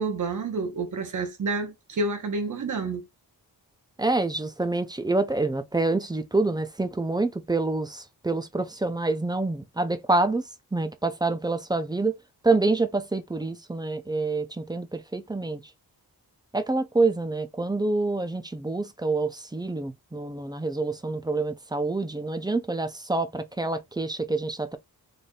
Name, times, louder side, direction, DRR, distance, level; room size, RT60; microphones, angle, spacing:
voice 1, 0.0-3.0, right 3 dB, 50° right, 0.9 m, -29 dB
voice 2, 4.0-10.4 10.7-12.2 12.4-15.6 16.5-24.8, right 3 dB, 10° right, 0.3 m, -27 dB
4.0 x 3.3 x 2.2 m
wide cardioid pair, 150°, 38 cm